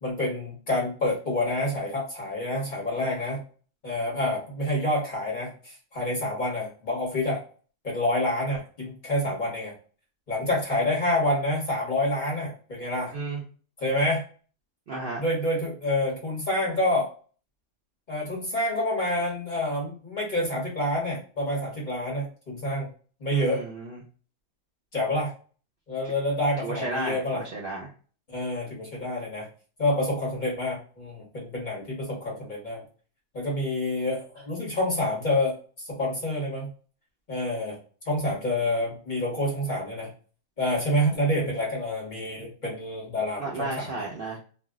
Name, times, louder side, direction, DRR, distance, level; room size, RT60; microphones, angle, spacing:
voice 1, 0.0-3.4 3.8-7.4 7.8-9.7 10.3-13.1 13.8-14.2 15.2-17.1 18.1-22.9 23.2-23.6 24.9-25.3 25.9-27.4 28.3-29.5 29.8-32.8 33.3-35.6 35.9-36.7 37.3-37.8 38.0-40.1 40.6-44.0, left 1 dB, 40° left, -4 dB, 1.0 m, -28 dB
voice 2, 14.9-15.2 23.3-24.0 26.6-27.8 43.4-44.4, right 3 dB, 60° right, -2 dB, 0.6 m, -33 dB
2.5 x 2.1 x 3.6 m, 0.40 s
omnidirectional pair, 1.4 m